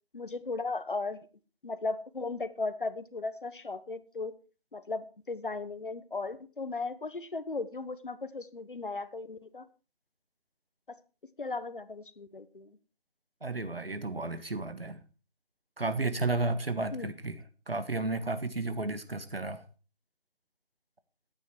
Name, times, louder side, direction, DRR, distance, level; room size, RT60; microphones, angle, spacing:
voice 1, 0.1-1.2 1.6-4.3 4.7-9.6 11.4-12.7 16.9-17.1, left 3 dB, 60° left, 1.3 m, -36 dB
voice 2, 13.4-15.0 15.8-19.6, right 2 dB, 75° right, 1.8 m, -33 dB
14.5 x 9.6 x 4.7 m
figure-of-eight pair, 160°, 30 cm